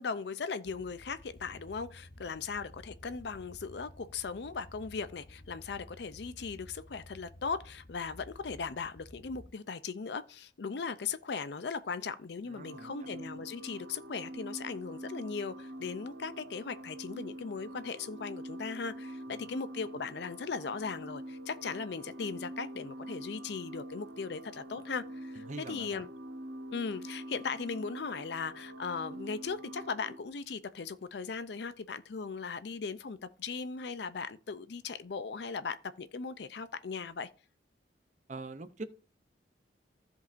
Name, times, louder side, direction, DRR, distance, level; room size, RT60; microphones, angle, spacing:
voice 1, 0.0-26.1 26.7-37.3, left 5 dB, 65° left, 0.5 m, -38 dB
sound 1, 0.6-9.5, left 1 dB, 85° left, 1.0 m, -53 dB
voice 2, 12.5-12.9 19.3-19.6 25.3-26.1 38.3-38.8, right 3 dB, 40° right, 0.6 m, -44 dB
sound 2, 12.5-30.2, right 1 dB, 85° right, 0.8 m, -45 dB
15.5 x 5.3 x 2.6 m
head